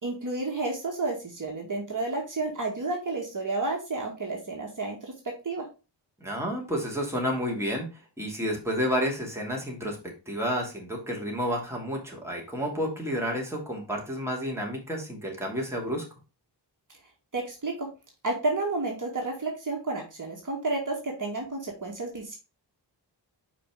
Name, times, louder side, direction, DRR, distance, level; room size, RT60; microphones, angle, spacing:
voice 1, 0.0-5.1 5.4-5.6 17.3-17.9 18.2-22.3, right 2 dB, 45° right, -1 dB, 1.7 m, -31 dB
voice 2, 6.2-16.0, equal, 5° right, -1 dB, 2.5 m, -30 dB
5.3 x 4.9 x 3.7 m, 0.31 s
wide cardioid pair, 80°, 44 cm